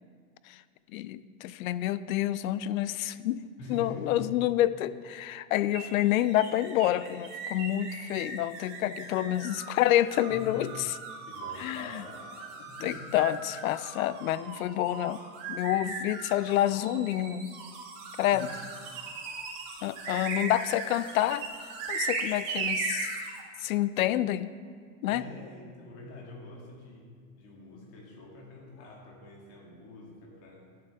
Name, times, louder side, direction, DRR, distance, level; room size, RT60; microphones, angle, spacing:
voice 1, 0.9-3.4 3.7-10.9 11.6-12.0 12.8-15.2 15.5-17.5 18.2-18.5 19.8-21.5 21.9-23.1 23.6-24.5 25.0-25.2, left 13 dB, 75° left, 15 dB, 0.5 m, -28 dB
voice 2, 3.6-4.3 10.3-10.7 11.2-13.1 18.3-18.6 25.1-27.1 27.4-30.7, left 2 dB, 35° left, -2 dB, 1.9 m, -45 dB
sound 1, 5.7-23.4, right 4 dB, 15° right, 0.4 m, -38 dB
11.0 x 7.1 x 3.4 m, 2.1 s
supercardioid pair, 165°, 41 cm